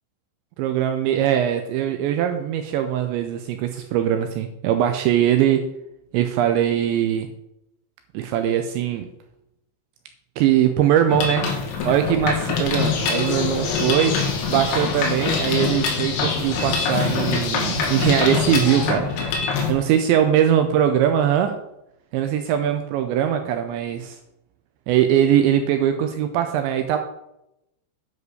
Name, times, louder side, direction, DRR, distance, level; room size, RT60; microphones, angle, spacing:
voice 1, 0.6-5.7 6.1-7.3 8.1-9.1 10.4-11.5 11.8-14.2 14.5-19.1 19.7-21.6 22.1-24.2 24.9-27.0, right 10 dB, 80° right, 7 dB, 2.7 m, -21 dB
Mechanisms, 11.1-19.7, left 5 dB, 85° left, 4.4 m, -25 dB
sound 1, 12.8-18.9, left 5 dB, 65° left, 3.3 m, -29 dB
9.8 x 4.9 x 6.4 m, 0.84 s
omnidirectional pair, 5.7 m